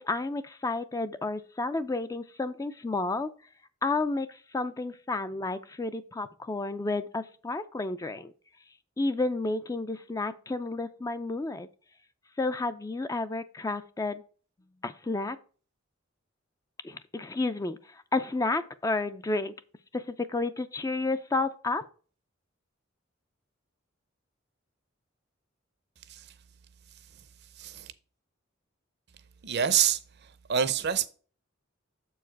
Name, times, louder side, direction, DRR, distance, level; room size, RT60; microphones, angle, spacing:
voice 1, 0.0-3.3 3.8-8.3 9.0-11.7 12.4-14.2 14.8-15.4 16.8-19.5 19.9-21.8, left 3 dB, 15° left, 0.4 m, -31 dB
voice 2, 27.6-27.9 29.4-31.1, right 8 dB, 55° right, 0.6 m, -27 dB
7.1 x 4.7 x 4.5 m
head